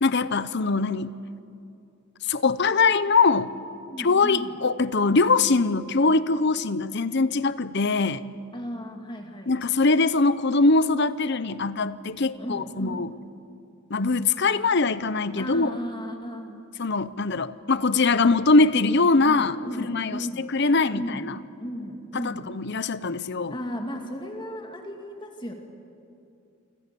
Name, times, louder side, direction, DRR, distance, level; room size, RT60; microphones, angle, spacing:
voice 1, 0.0-1.2 2.3-3.5 4.0-8.2 9.5-13.1 13.9-15.8 16.8-21.4 22.1-23.5, left 3 dB, 50° left, 15 dB, 0.8 m, -22 dB
voice 2, 3.8-4.5 8.5-9.5 12.4-13.1 15.4-16.7 19.2-20.5 20.9-21.3 21.6-22.5 23.5-25.5, equal, 20° left, 3 dB, 2.4 m, -35 dB
28.5 x 25.5 x 7.0 m, 2.6 s
head